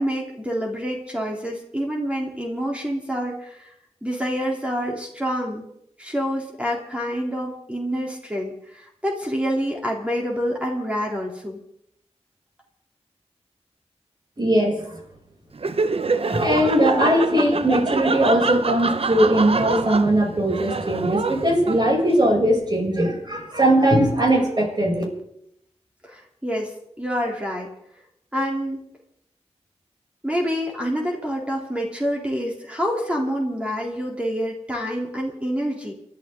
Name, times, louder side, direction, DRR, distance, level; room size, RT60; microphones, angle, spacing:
voice 1, 0.0-3.7 4.0-5.7 6.0-11.6 26.0-26.7 27.0-27.7 28.3-28.9 30.2-35.9, equal, 10° right, -1 dB, 3.5 m, -27 dB
voice 2, 14.4-15.0 16.1-25.0, right 1 dB, 40° right, -1 dB, 7.4 m, -20 dB
Laughter, 15.5-22.1, right 4 dB, 60° right, 0.9 m, -26 dB
30.0 x 12.0 x 3.9 m, 0.75 s
wide cardioid pair, 60°, 11 cm